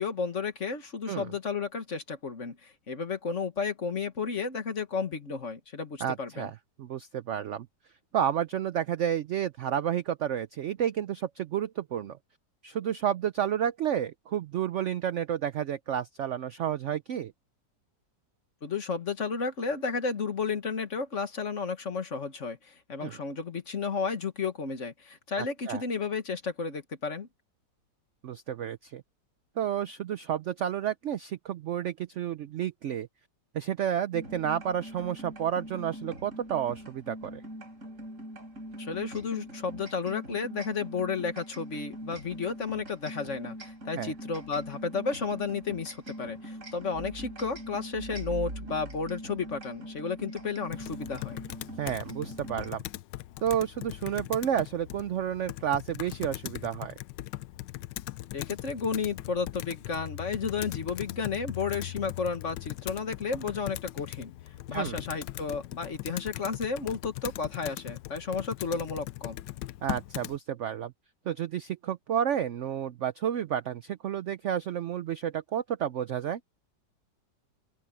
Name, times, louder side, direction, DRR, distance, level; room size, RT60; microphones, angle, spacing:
voice 1, 0.0-6.5 18.6-27.3 38.8-51.4 58.3-64.3 64.7-69.4, left 5 dB, 45° left, 1.8 m, -32 dB
voice 2, 6.0-6.5 6.8-7.7 8.1-12.2 12.6-17.3 23.0-23.2 25.4-25.8 28.2-29.0 29.6-33.1 33.5-37.4 44.0-44.1 51.8-52.8 53.4-56.9 64.7-65.0 69.8-70.9 71.3-76.4, right 9 dB, 70° right, 0.7 m, -31 dB
sound 1, 34.1-52.7, right 1 dB, 45° right, 6.7 m, -42 dB
Computer keyboard, 50.7-70.4, left 15 dB, 85° left, 1.3 m, -40 dB
open air
omnidirectional pair, 1.9 m